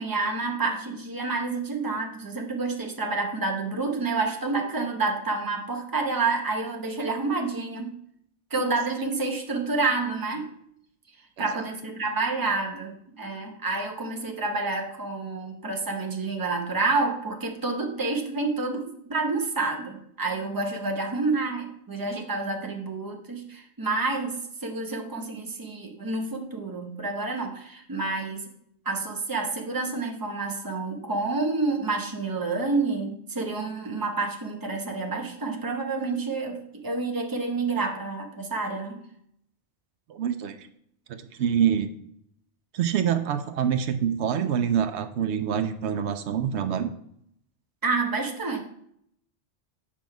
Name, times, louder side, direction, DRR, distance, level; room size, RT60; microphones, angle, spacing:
voice 1, 0.0-8.0 8.5-10.5 11.4-28.4 28.8-39.0 47.8-48.6, right 3 dB, 20° right, 2 dB, 0.9 m, -29 dB
voice 2, 40.1-40.7 41.1-41.9 42.7-46.9, right 8 dB, 80° right, 9 dB, 0.9 m, -26 dB
7.5 x 5.2 x 4.7 m, 0.71 s
omnidirectional pair, 1.1 m